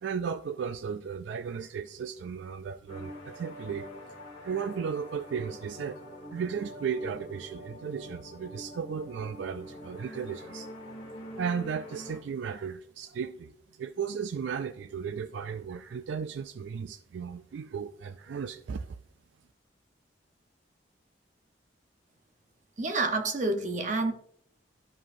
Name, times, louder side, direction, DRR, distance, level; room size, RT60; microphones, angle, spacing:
voice 1, 0.0-3.9 4.4-6.0 6.3-10.7 11.4-19.0, right 6 dB, 75° right, 11 dB, 0.3 m, -35 dB
sound 1, 2.9-12.2, equal, 35° left, 1.8 m, -45 dB
voice 2, 22.8-24.1, right 3 dB, 40° right, 5 dB, 0.8 m, -28 dB
13.0 x 4.9 x 2.6 m, 0.70 s
head